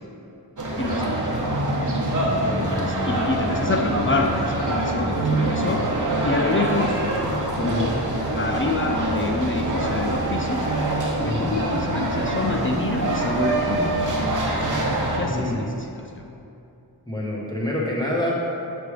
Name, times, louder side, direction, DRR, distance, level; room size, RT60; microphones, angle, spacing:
sound 1, 0.6-15.2, right 1 dB, 45° right, 1.0 m, -24 dB
voice 1, 0.8-1.3 2.8-5.8 6.2-7.0 7.5-7.9 8.3-10.7 11.2-13.9 15.1-16.3, left 3 dB, 30° left, 1 dB, 0.4 m, -27 dB
voice 2, 15.3-15.7 17.1-18.3, left 1 dB, 10° left, -5 dB, 1.0 m, -27 dB
7.6 x 3.5 x 4.9 m, 2.8 s
wide cardioid pair, 65°, 41 cm